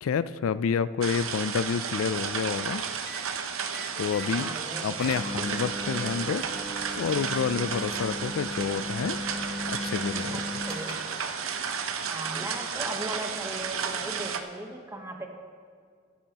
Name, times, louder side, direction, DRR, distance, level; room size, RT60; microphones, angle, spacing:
voice 1, 0.0-2.8 4.0-4.6 4.8-6.4 7.0-9.2 9.7-10.4, left 6 dB, 80° left, 15 dB, 0.3 m, -29 dB
sound 1, 1.0-14.4, right 6 dB, 80° right, 0.8 m, -33 dB
sound 2, 3.1-3.3 3.7-4.3 4.7-4.8 5.0-11.3, left 1 dB, 45° left, 1.0 m, -37 dB
voice 2, 4.2-5.1 10.3-11.6 12.1-15.3, right 1 dB, 15° right, 2 dB, 1.0 m, -38 dB
sound 3, 5.4-12.9, right 3 dB, 50° right, 1.1 m, -43 dB
23.0 x 10.0 x 2.9 m, 2.1 s
head